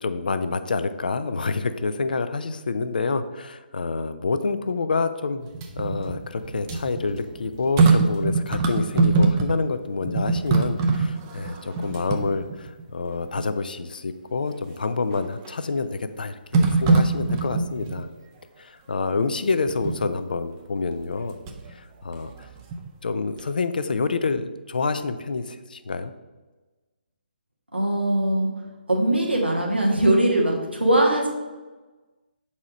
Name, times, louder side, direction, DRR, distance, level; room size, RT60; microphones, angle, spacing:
voice 1, 0.0-5.5 5.8-18.1 18.6-21.4 21.7-22.5 23.0-26.1, left 4 dB, 55° left, 10 dB, 0.4 m, -27 dB
sound 1, 5.4-9.8 10.0-12.8 13.4-13.5 15.1-15.6 16.5-18.0 19.7-20.1 21.0-21.7 22.1-23.1 23.4-23.5, right 3 dB, 20° right, 0.5 m, -23 dB
voice 2, 27.7-28.5 28.9-31.3, right 1 dB, 85° right, -1 dB, 1.6 m, -21 dB
4.7 x 4.2 x 5.1 m, 1.2 s
figure-of-eight pair, 140°, 6 cm